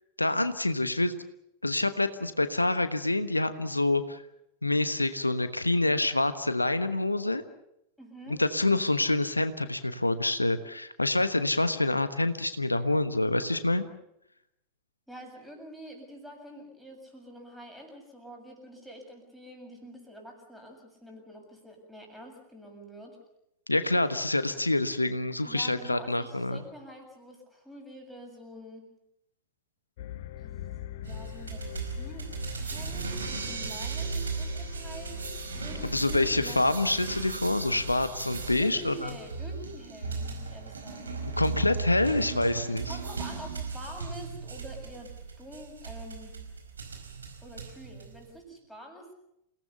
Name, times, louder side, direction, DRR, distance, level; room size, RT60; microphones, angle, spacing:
voice 1, 0.2-1.2 1.6-4.2 4.6-7.4 8.3-13.8 23.7-26.6 35.8-39.1 41.4-43.0, left 2 dB, 85° left, 12 dB, 1.2 m, -27 dB
voice 2, 8.0-8.4 15.1-23.2 25.4-28.9 30.4-32.3 32.6-35.3 35.5-36.7 38.6-41.2 42.9-46.3 47.4-49.1, equal, ahead, 1 dB, 7.4 m, -46 dB
sound 1, 30.0-40.3, left 13 dB, 55° left, 0.9 m, -44 dB
sound 2, 31.0-48.4, right 4 dB, 75° right, 4.7 m, -37 dB
28.5 x 18.0 x 7.0 m, 0.81 s
figure-of-eight pair, 90°, 0 cm